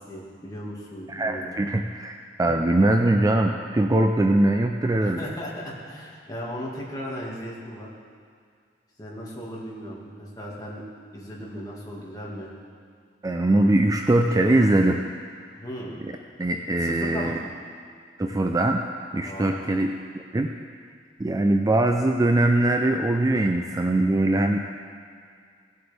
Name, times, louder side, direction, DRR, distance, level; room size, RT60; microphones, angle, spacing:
voice 1, 0.0-1.5 5.0-7.9 9.0-10.8 11.1-12.5 15.6-16.0 16.8-17.4 19.2-19.6, equal, 20° left, -4 dB, 1.9 m, -36 dB
voice 2, 1.1-5.3 13.2-15.0 16.0-16.1 16.4-17.4 18.2-18.8 19.1-19.9 20.1-20.5 21.2-24.6, right 1 dB, 20° right, 4 dB, 0.4 m, -22 dB
17.5 x 7.8 x 3.4 m, 2.2 s
head